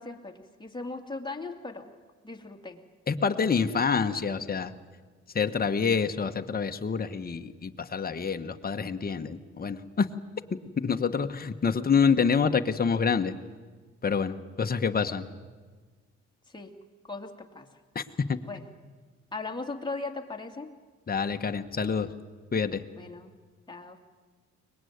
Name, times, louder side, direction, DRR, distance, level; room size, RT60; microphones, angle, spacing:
voice 1, 0.0-1.9 2.2-2.8 16.5-16.7 17.1-17.7 18.4-18.6 19.3-20.7 23.0-23.3 23.7-24.0, left 3 dB, 15° left, 3 dB, 2.4 m, -38 dB
voice 2, 3.1-4.7 5.3-10.1 10.8-13.3 14.0-15.3 17.9-18.0 21.1-22.1 22.5-22.8, left 6 dB, 30° left, 7 dB, 1.3 m, -27 dB
23.0 x 20.0 x 9.5 m, 1.5 s
cardioid pair, 90°, 30 cm